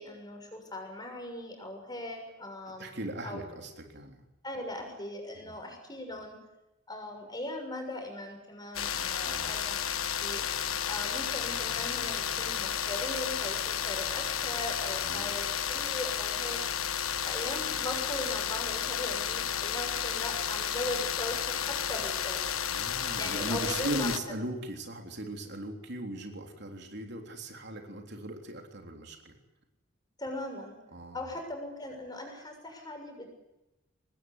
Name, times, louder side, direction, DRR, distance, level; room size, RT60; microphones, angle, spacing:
voice 1, 0.0-3.0 3.2-3.5 4.4-6.4 6.9-10.4 10.9-16.6 17.3-22.4 23.2-24.1 30.2-30.8 31.1-33.4, left 1 dB, 20° left, 4 dB, 6.7 m, -39 dB
voice 2, 2.7-4.2 5.3-5.6 9.2-9.5 15.0-15.3 22.7-29.4 30.9-31.3, right 1 dB, 55° right, 3 dB, 3.5 m, -38 dB
sound 1, 8.7-24.2, left 8 dB, 80° left, 1.4 m, -32 dB
25.0 x 20.0 x 9.8 m, 0.98 s
head